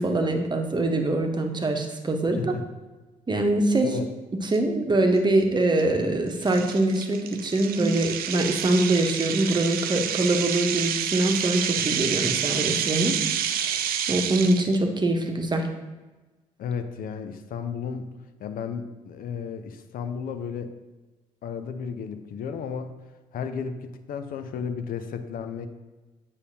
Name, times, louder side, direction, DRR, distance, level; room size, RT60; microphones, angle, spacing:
voice 1, 0.0-2.6 3.3-3.9 4.4-13.2 13.5-15.7, right 2 dB, 25° right, 4 dB, 1.0 m, -24 dB
sound 1, 4.5-4.6 5.2-5.4 5.8-5.9 6.4-14.8, right 9 dB, 60° right, 0.6 m, -28 dB
voice 2, 16.6-18.1 18.4-20.8 21.4-22.9 23.3-25.7, left 6 dB, 55° left, 8 dB, 0.6 m, -33 dB
8.1 x 5.4 x 2.7 m, 1.2 s
hypercardioid pair, 45°, 17 cm